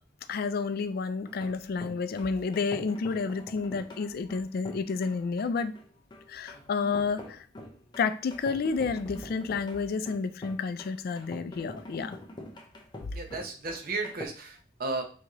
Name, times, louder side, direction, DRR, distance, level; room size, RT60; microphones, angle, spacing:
voice 1, 0.3-5.7 6.3-7.4 8.0-12.2, left 4 dB, 55° left, 11 dB, 0.4 m, -30 dB
sound 1, 1.2-14.3, left 1 dB, 25° left, 0.7 m, -45 dB
voice 2, 13.1-15.0, right 3 dB, 55° right, 4 dB, 0.8 m, -34 dB
4.5 x 2.8 x 3.0 m, 0.40 s
head